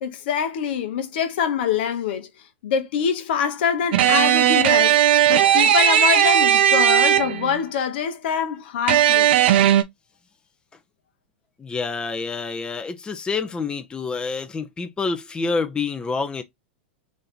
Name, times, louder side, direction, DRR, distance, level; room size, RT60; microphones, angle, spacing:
voice 1, 0.0-2.3 2.6-9.3, left 7 dB, 60° left, 0.8 m, -25 dB
sound 1, 3.9-7.6 8.9-9.8, right 10 dB, 60° right, 0.6 m, -17 dB
voice 2, 11.6-16.4, left 4 dB, 15° left, 0.6 m, -27 dB
3.2 x 2.7 x 3.9 m
hypercardioid pair, 105°, 6 cm